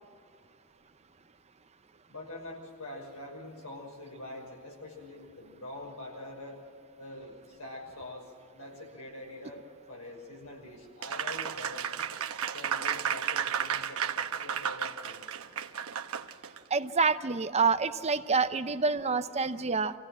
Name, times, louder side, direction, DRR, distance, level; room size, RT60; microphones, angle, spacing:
voice 1, 2.1-6.6 7.0-8.2 8.5-12.1 12.5-15.2, left 1 dB, 90° left, 1 dB, 5.9 m, -45 dB
Applause, 11.0-16.6, right 8 dB, 70° right, 1.0 m, -33 dB
voice 2, 16.7-19.9, right 4 dB, 30° right, 11 dB, 0.7 m, -27 dB
26.0 x 16.5 x 7.6 m, 2.3 s
head